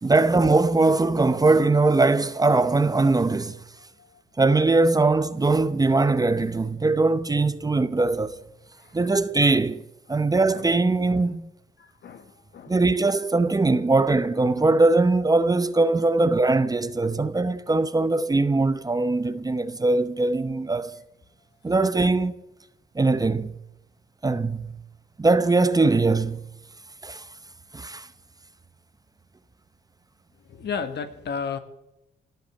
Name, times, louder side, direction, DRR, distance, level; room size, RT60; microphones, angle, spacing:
voice 1, 0.0-3.6 4.4-8.4 8.9-9.8 10.1-11.5 12.7-20.9 21.6-22.3 23.0-23.5 24.2-24.7 25.2-26.4 27.0-27.2 27.7-28.1, right 3 dB, 20° right, 0.8 m, -21 dB
voice 2, 11.8-12.7 21.7-21.8 30.5-31.6, left 6 dB, 60° left, 1.6 m, -33 dB
18.0 x 8.1 x 8.5 m
cardioid pair, 90°, 20 cm